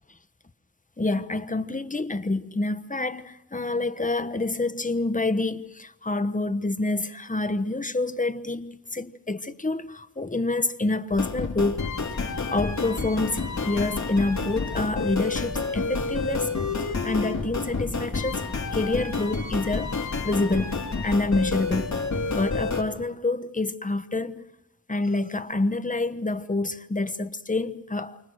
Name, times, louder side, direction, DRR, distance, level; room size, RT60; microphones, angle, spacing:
voice 1, 1.0-12.2 12.5-20.0 20.2-22.0 22.3-24.4 24.9-28.2, left 2 dB, 25° left, 1.2 m, -27 dB
sound 1, 11.1-22.8, left 4 dB, 55° left, 3.5 m, -29 dB
28.5 x 25.0 x 6.5 m
wide cardioid pair, 100°, 33 cm